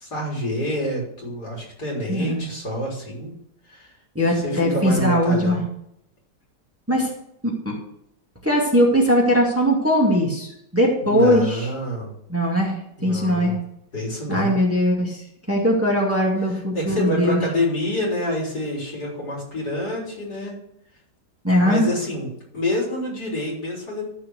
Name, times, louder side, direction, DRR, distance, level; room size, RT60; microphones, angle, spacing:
voice 1, 0.0-3.4 3.7-3.9 4.3-5.6 11.0-12.1 13.0-13.6 13.9-14.5 16.7-20.5 21.5-24.1, left 1 dB, 65° left, -3 dB, 4.3 m, -27 dB
voice 2, 2.1-2.4 4.2-5.6 6.9-7.1 7.4-7.8 8.4-10.5 10.7-11.7 12.3-13.5 14.3-15.2 15.5-17.4 21.4-21.9, equal, 10° right, -3 dB, 2.1 m, -20 dB
13.0 x 4.8 x 6.4 m, 0.75 s
omnidirectional pair, 1.8 m